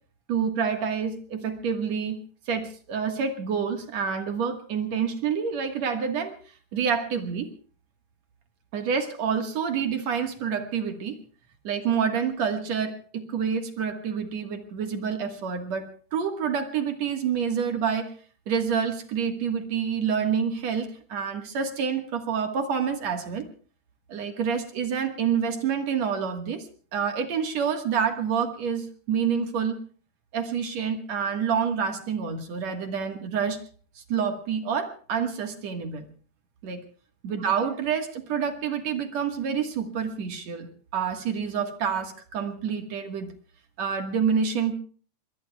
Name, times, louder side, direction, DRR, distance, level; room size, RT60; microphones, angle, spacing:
voice 1, 0.3-2.2 2.5-6.3 6.7-7.5 8.7-11.2 11.6-18.1 18.5-23.5 24.1-29.8 30.3-33.6 34.0-36.1 36.6-36.8 37.2-43.3 43.8-44.7, right 7 dB, 55° right, 6 dB, 2.1 m, -28 dB
26.5 x 22.0 x 2.3 m, 0.42 s
omnidirectional pair, 4.8 m